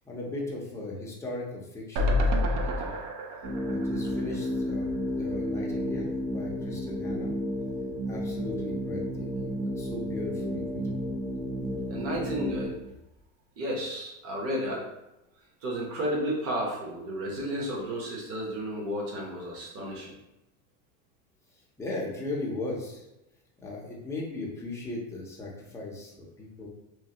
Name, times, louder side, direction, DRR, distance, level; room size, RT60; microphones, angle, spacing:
voice 1, 0.0-3.0 3.6-7.4 8.1-11.0 17.2-17.4 21.8-23.1 23.6-26.7, left 2 dB, 5° left, -4 dB, 0.5 m, -38 dB
sound 1, 2.0-5.2 5.6-5.7 5.9-6.0, left 1 dB, 50° right, 0.5 m, -29 dB
sound 2, 3.4-12.7, equal, 90° right, 1.4 m, -32 dB
voice 2, 11.9-12.8 13.6-14.9 15.6-20.1, equal, 35° right, -2 dB, 1.0 m, -32 dB
3.1 x 2.2 x 2.8 m, 0.92 s
supercardioid pair, 130°, 43 cm